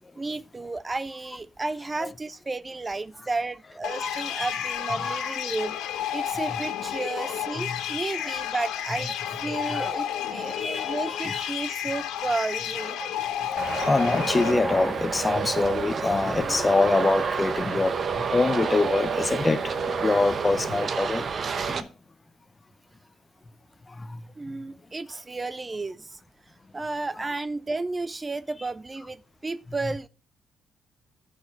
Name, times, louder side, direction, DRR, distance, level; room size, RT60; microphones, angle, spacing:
voice 1, 0.2-5.8 6.1-13.3 24.4-26.2 26.7-30.1, right 3 dB, 25° right, 0.3 m, -32 dB
sound 1, 3.8-14.5, left 10 dB, 90° left, 0.9 m, -31 dB
voice 2, 4.0-4.5 4.9-5.3 6.5-6.6 7.2-8.3 9.5-9.9 10.5-11.5 13.3-21.3 21.6-21.9 23.9-24.2 29.8-30.0, left 3 dB, 25° left, 0.6 m, -26 dB
Traffic noise roadway noise, 13.6-21.8, right 5 dB, 45° right, 0.8 m, -29 dB
11.0 x 5.0 x 5.2 m
cardioid pair, 90°, 0 cm